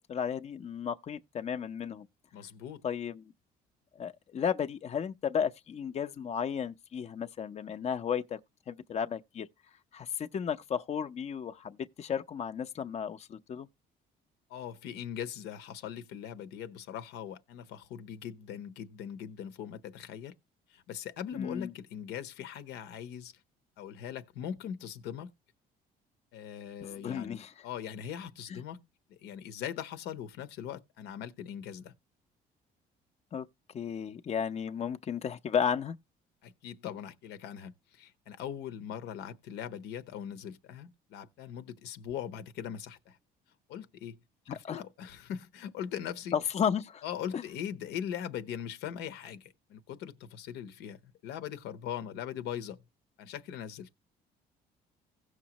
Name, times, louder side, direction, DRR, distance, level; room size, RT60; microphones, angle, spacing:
voice 1, 0.1-2.1 2.8-3.2 4.0-8.4 8.7-9.5 9.9-13.7 21.3-21.7 26.8-27.5 28.5-28.6 33.3-33.5 33.7-36.0 44.7-44.8 46.3-47.0 47.3-47.4, left 7 dB, 40° left, 0.7 m, -33 dB
voice 2, 2.3-2.8 14.5-20.4 20.7-23.3 23.8-25.3 26.3-31.9 36.4-43.2 43.7-44.2 44.5-46.4 47.0-52.8 53.2-53.9, left 9 dB, 85° left, 1.0 m, -41 dB
16.5 x 6.3 x 2.9 m
cardioid pair, 110°, 17 cm